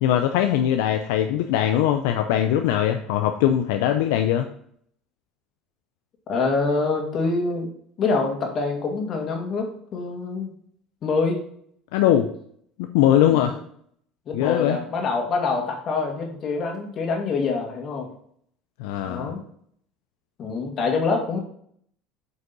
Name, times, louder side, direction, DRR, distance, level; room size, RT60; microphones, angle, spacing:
voice 1, 0.0-4.5 11.9-12.3 12.8-13.6 14.3-14.8 18.8-19.3, left 11 dB, 75° left, 6 dB, 0.5 m, -21 dB
voice 2, 6.3-7.7 8.0-9.7 9.9-10.5 11.0-11.4 13.3-13.6 14.3-18.1 19.0-19.4 20.4-21.4, left 4 dB, 50° left, 2 dB, 2.2 m, -25 dB
8.0 x 5.2 x 4.1 m, 0.64 s
hypercardioid pair, 75°, 0 cm